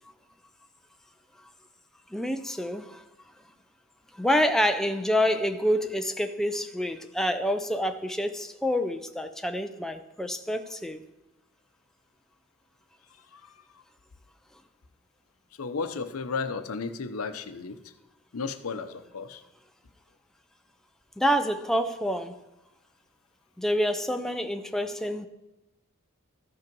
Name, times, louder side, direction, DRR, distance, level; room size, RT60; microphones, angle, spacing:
voice 1, 2.1-3.0 4.2-11.0 21.2-22.3 23.6-25.3, equal, ahead, 7 dB, 0.4 m, -27 dB
voice 2, 13.3-13.8 15.5-17.9 18.3-19.4, left 4 dB, 85° left, 9 dB, 0.7 m, -34 dB
14.0 x 5.5 x 5.3 m, 0.94 s
head